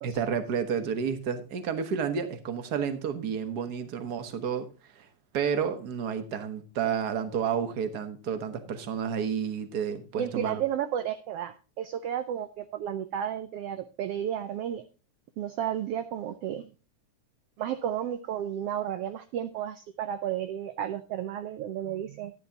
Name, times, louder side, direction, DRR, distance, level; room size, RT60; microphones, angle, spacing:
voice 1, 0.0-4.7 4.9-5.1 5.3-10.6, right 7 dB, 65° right, 8 dB, 0.9 m, -30 dB
voice 2, 10.2-14.8 15.4-16.7 17.6-22.3, right 10 dB, 85° right, 10 dB, 1.3 m, -32 dB
13.0 x 11.0 x 2.8 m, 0.32 s
omnidirectional pair, 3.6 m